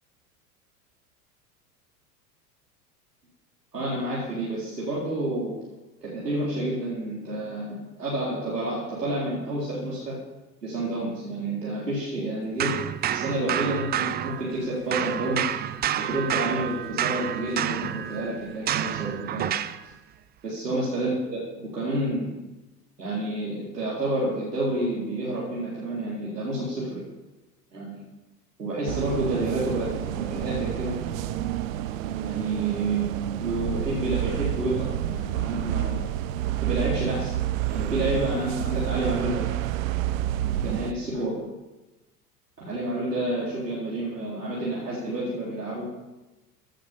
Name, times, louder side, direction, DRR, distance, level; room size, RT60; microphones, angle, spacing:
voice 1, 3.7-5.6 6.0-10.2 10.6-12.7 13.1-15.5 16.0-19.5 20.4-22.3 23.0-27.0 27.7-28.0 28.6-29.9 30.2-31.0 32.1-33.0 33.4-36.0 36.6-37.3 37.7-39.5 40.6-41.4 42.7-45.9, right 1 dB, 85° right, -6 dB, 4.1 m, -29 dB
sound 1, 12.6-14.7 14.9-19.8, right 10 dB, 20° right, 0.6 m, -29 dB
sound 2, 28.9-40.9, right 12 dB, 55° right, 1.1 m, -29 dB
15.5 x 9.3 x 7.2 m, 1.1 s
figure-of-eight pair, 85°, 47 cm